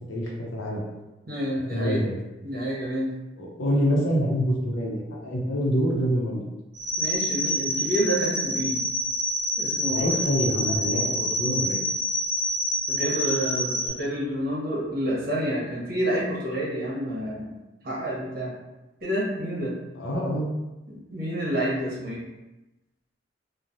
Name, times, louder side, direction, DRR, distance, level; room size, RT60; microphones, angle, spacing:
voice 1, 0.1-0.9 1.7-2.2 3.4-6.5 9.9-11.8 20.0-20.5, equal, 90° left, -2 dB, 0.7 m, -26 dB
voice 2, 1.3-2.0 2.4-3.1 7.0-8.8 9.6-10.2 12.9-17.6 17.8-18.5 19.0-19.7 20.9-22.2, right 1 dB, 50° right, -6 dB, 0.9 m, -28 dB
sound 1, 6.8-13.9, equal, 80° right, 0.6 m, -27 dB
3.0 x 2.1 x 2.5 m, 1.0 s
head